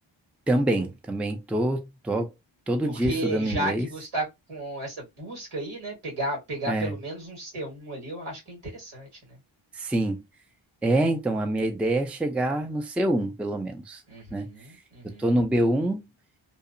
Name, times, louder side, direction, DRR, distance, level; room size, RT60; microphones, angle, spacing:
voice 1, 0.5-2.3 2.7-3.9 6.7-7.0 9.7-10.2 10.8-14.0 14.3-14.5 15.0-16.1, right 1 dB, 5° right, 0.4 m, -26 dB
voice 2, 2.8-9.1 14.1-15.3, right 1 dB, 85° right, 1.7 m, -33 dB
2.8 x 2.0 x 2.4 m
wide cardioid pair, 75°, 48 cm